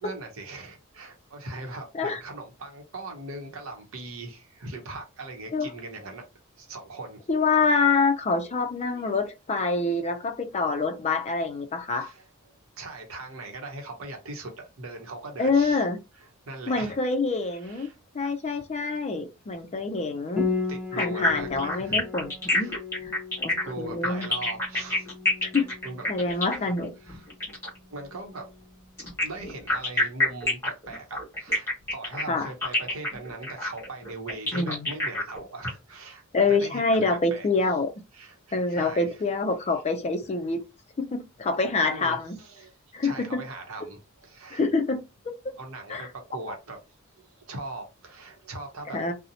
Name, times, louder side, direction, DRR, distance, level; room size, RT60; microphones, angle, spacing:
voice 1, 0.0-6.3 6.6-7.3 8.4-8.6 8.9-9.2 11.9-12.3 12.8-15.8 16.1-16.9 17.4-18.0 18.2-18.6 20.7-22.1 22.4-22.8 23.6-25.1 25.8-26.0 26.3-26.7 27.0-27.3 27.9-28.5 29.2-36.2 36.5-37.5 38.1-39.2 41.9-42.7 43.0-44.7 45.6-46.8 47.2-49.1, right 2 dB, 70° right, 0.8 m, -40 dB
voice 2, 7.3-12.1 15.4-16.0 16.7-20.5 20.9-22.7 23.4-24.3 25.5-25.7 26.1-26.9 32.3-32.5 34.5-34.9 36.3-37.9 38.5-40.6 41.0-42.4 42.9-43.5 44.5-45.0 45.4-45.5 45.9-46.1 48.9-49.1, left 3 dB, 30° left, 0.4 m, -26 dB
Piano, 20.4-29.7, left 4 dB, 5° right, 0.7 m, -36 dB
sound 1, 21.0-27.8 29.0-35.7, left 2 dB, 10° left, 1.2 m, -27 dB
2.6 x 2.0 x 2.7 m
head